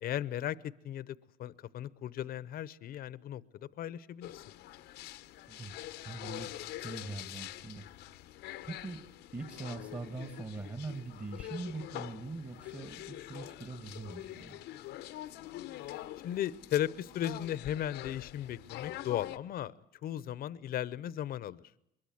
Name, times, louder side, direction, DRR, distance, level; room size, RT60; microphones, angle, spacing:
voice 1, 0.0-3.4 3.8-4.4 16.2-19.7 20.0-21.6, left 11 dB, 60° left, 19 dB, 0.9 m, -36 dB
sound 1, 4.2-19.4, left 14 dB, 85° left, 0.9 m, -45 dB
voice 2, 6.1-7.9 8.6-9.0 9.3-14.6, right 3 dB, 30° right, 9 dB, 2.1 m, -42 dB
sound 2, 10.7-13.8, right 3 dB, 65° right, 8.0 m, -71 dB
23.0 x 22.0 x 7.9 m, 0.77 s
cardioid pair, 110°, 17 cm